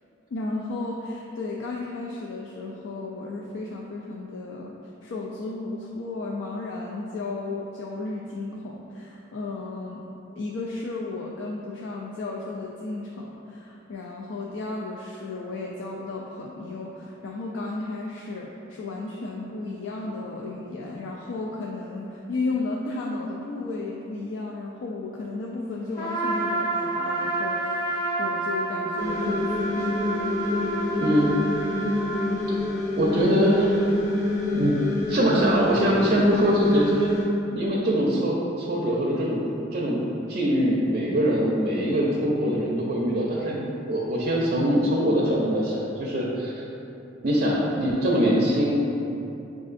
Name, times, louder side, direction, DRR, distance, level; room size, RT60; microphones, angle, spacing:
voice 1, 0.3-4.8 5.0-10.1 10.4-27.8 28.2-30.0, left 3 dB, 80° left, -2 dB, 0.3 m, -34 dB
Trumpet, 26.0-32.4, right 2 dB, 45° left, 1.3 m, -29 dB
sound 1, 29.0-37.2, left 1 dB, 20° left, 0.8 m, -27 dB
voice 2, 31.0-31.3 32.5-32.6 32.9-33.8 34.5-34.7 35.1-37.1 37.5-39.4 39.7-40.0 40.3-43.6 43.9-46.6 47.2-48.8, equal, 45° right, -4 dB, 0.5 m, -23 dB
6.3 x 2.5 x 2.5 m, 2.9 s
head